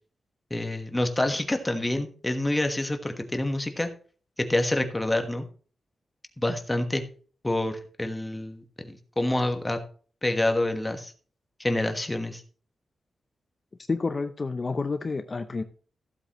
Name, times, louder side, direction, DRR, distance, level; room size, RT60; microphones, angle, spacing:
voice 1, 0.5-3.9 4.4-5.5 6.4-7.0 7.4-9.8 10.2-11.1 11.6-12.4, left 1 dB, 10° left, 5 dB, 1.3 m, -27 dB
voice 2, 13.9-15.6, left 4 dB, 30° left, 8 dB, 0.6 m, -29 dB
15.0 x 8.0 x 3.0 m, 0.41 s
wide cardioid pair, 170°, 0 cm